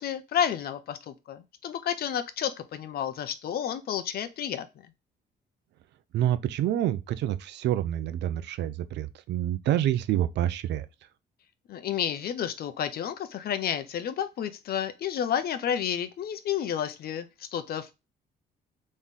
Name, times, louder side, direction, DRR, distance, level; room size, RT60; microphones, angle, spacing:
voice 1, 0.0-4.7 11.7-17.9, left 9 dB, 60° left, 0.7 m, -31 dB
voice 2, 6.1-10.9, right 12 dB, 80° right, 0.5 m, -27 dB
3.7 x 3.2 x 3.9 m
cardioid pair, 135°, 18 cm